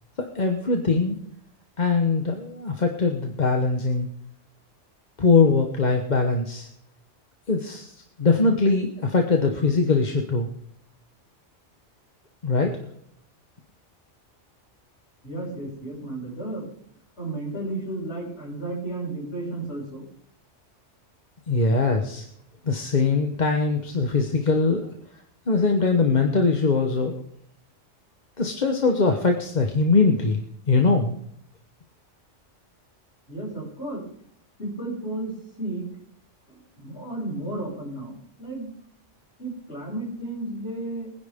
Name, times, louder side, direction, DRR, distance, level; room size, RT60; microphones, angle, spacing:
voice 1, 0.3-1.2 1.8-4.1 5.2-6.7 7.5-7.9 8.2-10.5 12.4-12.7 21.5-22.2 22.7-24.9 25.5-27.2 28.4-31.1, left 4 dB, 40° left, 4 dB, 1.1 m, -22 dB
voice 2, 15.2-16.7 17.2-20.0 33.3-34.0 34.6-35.9 36.5-38.7 39.4-41.1, right 2 dB, 60° left, -6 dB, 6.4 m, -33 dB
22.5 x 10.5 x 3.6 m, 0.69 s
omnidirectional pair, 1.3 m